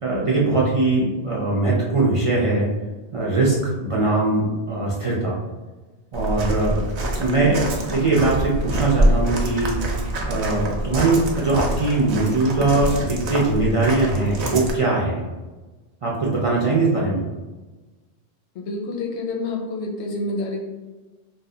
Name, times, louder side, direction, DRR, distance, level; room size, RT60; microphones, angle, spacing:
voice 1, 0.0-2.7 3.1-5.3 6.1-6.8 7.2-9.7 10.2-15.3 16.0-17.2, right 2 dB, 40° right, -5 dB, 0.5 m, -21 dB
Walk footsteps, 6.1-14.7, right 1 dB, 85° right, 0.9 m, -26 dB
voice 2, 18.5-20.6, left 2 dB, 85° left, 0 dB, 0.9 m, -28 dB
2.7 x 2.1 x 3.7 m, 1.2 s
omnidirectional pair, 1.1 m